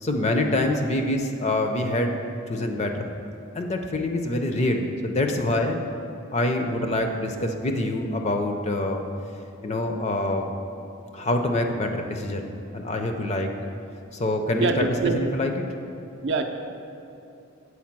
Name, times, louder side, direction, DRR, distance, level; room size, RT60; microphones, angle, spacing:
voice 1, 0.0-2.2 2.5-3.1 3.5-5.8 6.3-9.0 9.6-10.5 11.1-13.5 14.1-15.5, left 1 dB, 30° left, 4 dB, 0.5 m, -25 dB
voice 2, 14.6-15.3 16.2-16.4, right 3 dB, 55° right, 5 dB, 0.5 m, -24 dB
8.4 x 4.8 x 6.0 m, 2.7 s
head